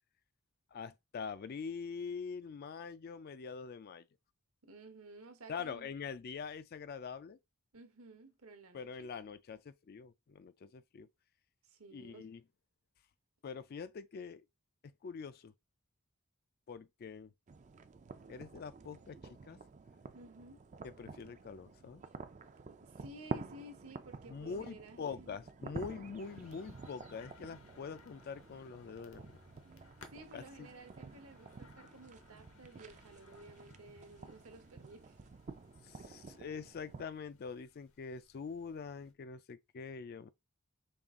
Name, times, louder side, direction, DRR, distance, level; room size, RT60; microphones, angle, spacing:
voice 1, 0.7-4.1 5.5-7.4 8.7-11.1 11.9-12.4 13.4-14.4 15.0-15.5 16.7-17.3 18.3-19.2 19.5-19.6 20.8-22.0 24.3-29.4 30.3-30.7 35.8-40.3, left 5 dB, 45° left, 0.3 m, -44 dB
voice 2, 4.6-5.9 7.7-9.1 11.6-12.3 20.1-20.6 22.8-25.4 30.1-35.2 36.2-36.4, right 2 dB, 75° right, 1.0 m, -54 dB
sound 1, 17.5-37.0, right 4 dB, 35° right, 0.4 m, -50 dB
sound 2, 26.2-39.1, left 4 dB, 65° left, 0.8 m, -63 dB
5.3 x 2.4 x 3.6 m
head